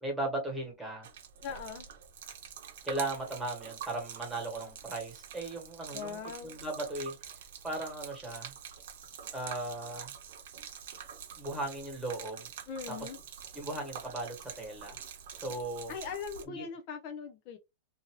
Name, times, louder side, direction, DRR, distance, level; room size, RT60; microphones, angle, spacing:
voice 1, 0.0-1.1 2.8-7.1 7.6-8.5 9.3-10.1 11.4-12.5 13.0-13.1 13.5-15.0 15.3-15.9 16.5-16.7, right 2 dB, 5° right, 1.4 m, -37 dB
Gurgling / Liquid, 1.0-16.4, right 8 dB, 65° right, 0.8 m, -46 dB
voice 2, 1.4-1.9 5.9-6.6 12.7-13.2 15.9-17.6, left 6 dB, 40° left, 0.4 m, -40 dB
2.6 x 2.6 x 2.9 m
supercardioid pair, 160°, 0 cm